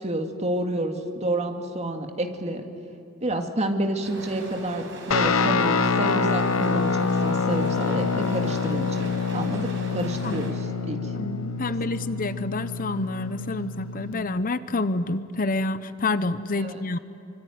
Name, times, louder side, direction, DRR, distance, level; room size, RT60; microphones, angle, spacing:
voice 1, 0.0-2.7 3.2-10.5 10.9-11.0 11.6-11.7 16.6-16.8, right 1 dB, 30° right, 5 dB, 2.3 m, -29 dB
sound 1, 4.0-10.5, right 2 dB, 65° right, 5.9 m, -40 dB
Guitar, 5.1-14.2, left 4 dB, 75° left, 1.3 m, -26 dB
voice 2, 11.1-17.0, left 2 dB, 40° left, 13 dB, 0.8 m, -28 dB
25.0 x 25.0 x 9.4 m, 3.0 s
head